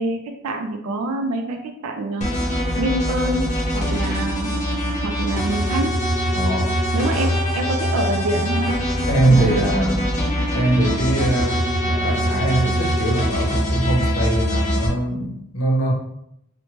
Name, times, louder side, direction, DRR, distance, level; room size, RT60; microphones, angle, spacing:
voice 1, 0.0-2.3 2.8-3.5 3.7-4.5 5.0-5.9 6.9-8.8 9.2-9.9, right 2 dB, 90° right, 0.4 m, -26 dB
sound 1, 2.2-14.9, equal, 35° left, 0.6 m, -22 dB
voice 2, 6.3-6.8 9.1-10.1 10.5-15.9, right 2 dB, 70° left, 0.7 m, -22 dB
3.0 x 2.1 x 2.8 m
head